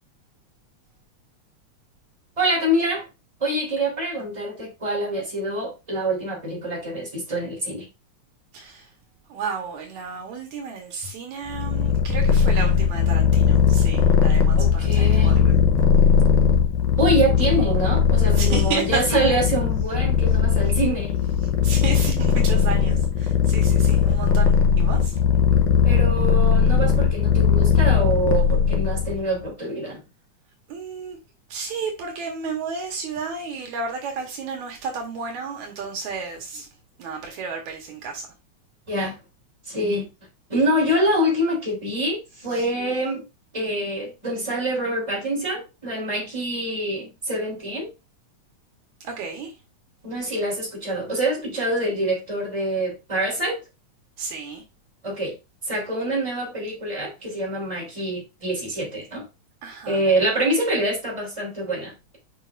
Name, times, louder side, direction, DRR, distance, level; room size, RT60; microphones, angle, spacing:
voice 1, 2.4-3.0 3.4-7.9 14.6-15.3 17.0-21.2 25.8-30.0 38.9-39.2 39.6-40.1 40.5-43.2 43.5-47.9 50.0-53.6 55.0-55.3 55.6-59.2 59.8-62.2, right 1 dB, 10° right, 3.4 m, -25 dB
voice 2, 8.5-8.9 9.3-15.6 18.3-19.5 21.6-25.2 30.7-31.2 31.5-36.7 37.0-38.3 42.5-42.6 49.0-49.5 54.2-54.6 59.6-60.0, right 5 dB, 75° right, 2.6 m, -32 dB
Purr, 11.5-29.2, left 7 dB, 85° left, 2.3 m, -19 dB
7.3 x 5.1 x 2.5 m
omnidirectional pair, 3.4 m